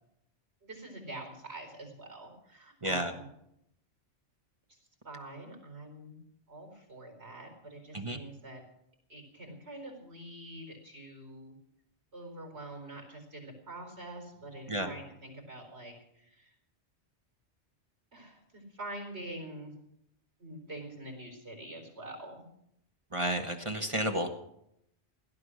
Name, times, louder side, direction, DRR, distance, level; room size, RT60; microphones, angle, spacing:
voice 1, 0.6-3.3 4.7-4.8 5.0-6.2 6.5-8.6 9.1-11.6 12.1-16.5 18.1-19.7 20.4-22.4, right 1 dB, 70° right, 3 dB, 4.5 m, -45 dB
voice 2, 23.1-24.3, right 1 dB, 30° right, 5 dB, 1.3 m, -31 dB
17.0 x 11.5 x 6.4 m, 0.77 s
omnidirectional pair, 1.1 m